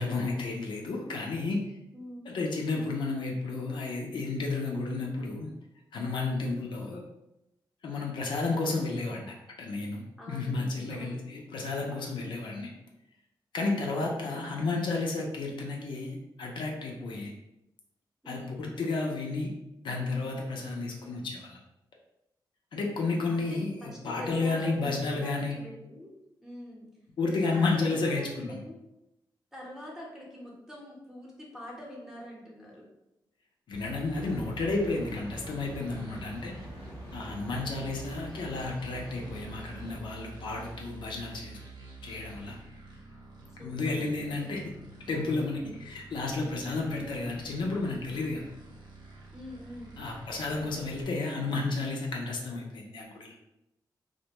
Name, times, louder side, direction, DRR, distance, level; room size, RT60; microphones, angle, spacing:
voice 1, 0.0-1.6 2.3-5.5 5.9-7.0 7.8-12.7 13.5-17.3 18.3-19.5 19.8-21.6 22.7-25.5 27.2-28.6 33.7-36.6 37.1-41.6 42.0-42.6 43.6-44.6 45.1-48.5 50.0-53.3, left 3 dB, 80° left, 0 dB, 0.5 m, -32 dB
voice 2, 1.9-2.3 6.3-6.6 10.2-11.3 14.0-14.5 18.2-18.6 23.3-26.1 26.4-26.9 27.3-28.8 29.5-32.8 43.5-44.6 45.5-45.9 49.3-50.0, left 1 dB, 5° right, -4 dB, 0.8 m, -45 dB
sound 1, 33.7-51.0, right 3 dB, 70° right, 0.7 m, -48 dB
sound 2, 34.1-40.0, equal, 20° left, 0.8 m, -46 dB
2.4 x 2.1 x 2.9 m, 0.88 s
wide cardioid pair, 100°, 8 cm